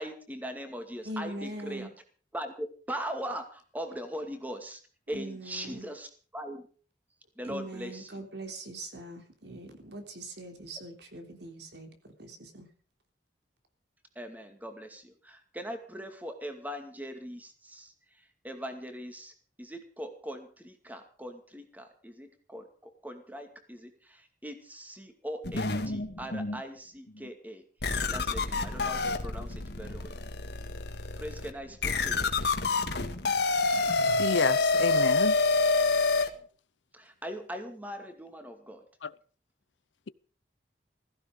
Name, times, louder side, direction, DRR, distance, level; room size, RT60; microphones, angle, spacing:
voice 1, 0.0-1.9 2.3-4.8 5.1-6.1 6.3-6.6 7.4-8.2 14.2-27.6 28.1-30.2 31.2-32.4 36.9-38.8, equal, 10° right, 2.3 m, -40 dB
voice 2, 1.0-1.9 5.1-5.9 7.4-12.7, right 1 dB, 70° right, 3.4 m, -41 dB
sound 1, 25.4-26.6 27.2-27.3 27.8-36.3, left 3 dB, 65° left, 1.9 m, -28 dB
voice 3, 34.1-35.4 39.0-39.1, left 5 dB, 90° left, 0.7 m, -30 dB
16.0 x 15.0 x 5.3 m
head